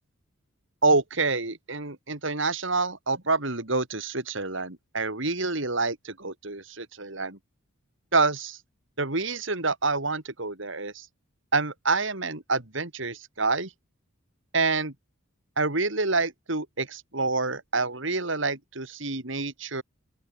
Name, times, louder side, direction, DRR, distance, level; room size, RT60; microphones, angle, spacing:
voice 1, 0.8-7.4 8.1-8.6 9.0-11.1 11.5-13.7 14.5-14.9 15.6-19.8, right 3 dB, 60° right, 3.0 m, -27 dB
open air
head